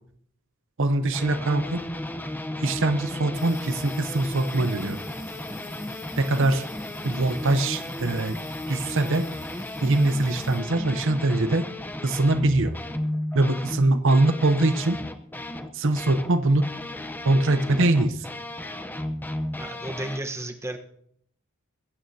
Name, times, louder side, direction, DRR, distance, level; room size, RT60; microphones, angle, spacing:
voice 1, 0.8-1.8 2.6-5.0 6.2-6.6 7.0-8.4 8.7-9.3 9.8-11.6 12.0-12.7 13.3-15.0 15.7-16.6 17.2-18.3, right 2 dB, 60° right, 9 dB, 0.8 m, -22 dB
sound 1, 1.1-16.3 16.6-20.2, left 1 dB, 10° left, 0.7 m, -34 dB
sound 2, 3.3-10.6, left 6 dB, 35° left, 3.5 m, -48 dB
voice 2, 19.6-20.8, right 1 dB, 15° right, 4 dB, 1.1 m, -33 dB
22.0 x 15.5 x 2.8 m, 0.67 s
head